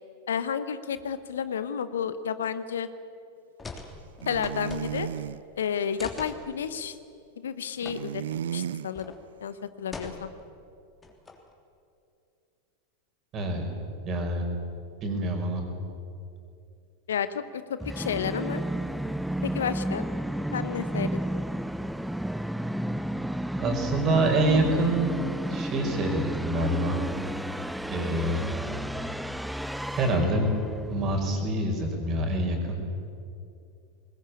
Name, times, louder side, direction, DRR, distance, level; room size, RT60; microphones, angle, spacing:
voice 1, 0.3-2.9 4.3-5.1 5.6-6.9 7.4-8.2 8.5-9.1 9.4-10.3 17.1-18.6 19.4-20.1 20.5-21.4, left 7 dB, 75° left, 13 dB, 1.0 m, -31 dB
sound 1, 3.6-5.3 6.0-6.4 7.8-8.0 8.3-8.4 8.9-9.2 9.9-10.5 11.0-11.5, left 3 dB, 15° left, 3.3 m, -41 dB
sound 2, 4.2-5.4 7.8-8.9, right 10 dB, 70° right, 0.5 m, -33 dB
voice 2, 13.3-13.7 14.0-14.4 15.0-15.6 23.6-25.1 25.5-27.0 27.9-28.4 29.9-30.5 30.9-32.8, right 1 dB, 35° right, 4 dB, 5.2 m, -26 dB
Musical instrument, 17.8-31.5, equal, 5° right, 0.5 m, -32 dB
21.0 x 20.0 x 8.6 m, 2.5 s
figure-of-eight pair, 90°, 0 cm